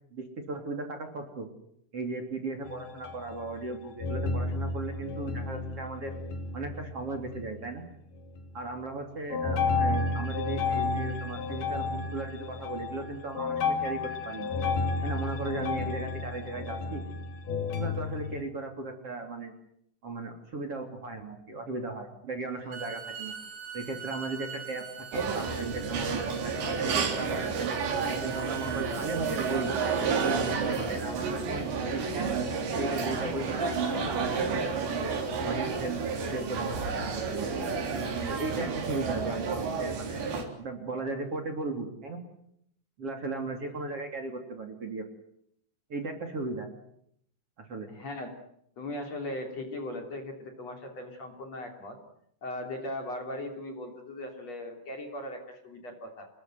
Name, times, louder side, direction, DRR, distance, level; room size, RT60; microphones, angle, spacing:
voice 1, 0.1-1.5 1.9-6.1 6.5-7.9 8.5-14.5 15.0-17.0 17.7-19.5 20.0-23.3 23.7-24.8 25.1-27.8 28.1-29.7 30.2-32.3 32.8-35.1 35.4-36.0 36.3-37.5 38.3-40.2 40.6-42.2 43.0-45.0 45.9-46.7 47.6-47.9, right 3 dB, 35° right, 4 dB, 3.6 m, -36 dB
sound 1, 2.7-3.7 4.0-7.8 8.1-8.7 9.3-18.4, left 4 dB, 65° left, 4.5 m, -32 dB
Bowed string instrument, 22.6-30.6, right 8 dB, 65° right, 5.3 m, -42 dB
sound 2, 25.1-40.4, right 5 dB, 80° right, 5.8 m, -31 dB
voice 2, 47.9-48.4 48.8-52.0 52.4-56.3, left 1 dB, 40° left, 4 dB, 3.9 m, -38 dB
28.5 x 21.0 x 8.0 m, 0.71 s
omnidirectional pair, 5.0 m